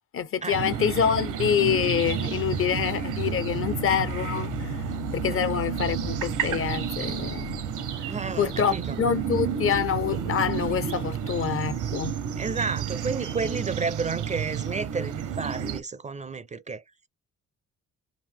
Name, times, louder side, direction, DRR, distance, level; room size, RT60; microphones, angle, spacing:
voice 1, 0.1-4.8 5.1-7.6 8.4-12.2, left 8 dB, 45° left, 0.6 m, -26 dB
sound 1, 0.5-15.8, right 8 dB, 80° right, 0.9 m, -31 dB
sound 2, 2.4-8.9, left 8 dB, 85° left, 1.1 m, -40 dB
voice 2, 8.1-9.0 12.4-16.8, right 4 dB, 25° right, 0.4 m, -31 dB
5.2 x 2.6 x 3.5 m
cardioid pair, 90°, 30 cm